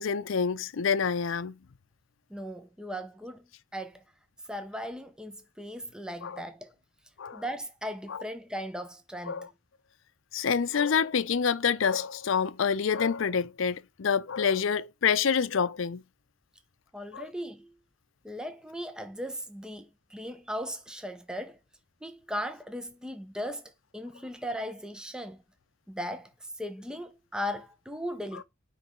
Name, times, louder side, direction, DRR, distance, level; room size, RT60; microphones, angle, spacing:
voice 1, 0.0-1.6 6.2-6.4 7.2-7.4 8.1-8.2 9.3-9.5 10.3-16.0 17.1-17.3, left 6 dB, 75° left, 0.5 m, -27 dB
voice 2, 2.3-3.5 3.7-4.0 4.5-6.7 7.3-9.5 16.9-17.7 18.2-21.6 22.0-25.4 25.9-28.4, equal, 5° right, 0.6 m, -38 dB
9.1 x 3.4 x 4.3 m
head